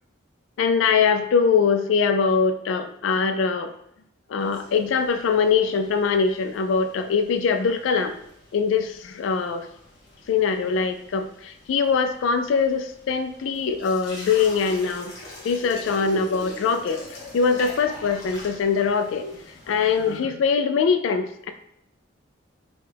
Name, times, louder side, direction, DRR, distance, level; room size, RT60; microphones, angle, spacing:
voice 1, 0.6-3.7 4.3-8.2 8.5-9.7 10.3-15.1 15.4-21.5, left 5 dB, 80° left, 8 dB, 0.3 m, -22 dB
sound 1, 4.4-20.2, left 1 dB, 65° left, 1.6 m, -43 dB
6.0 x 2.3 x 3.3 m, 0.76 s
head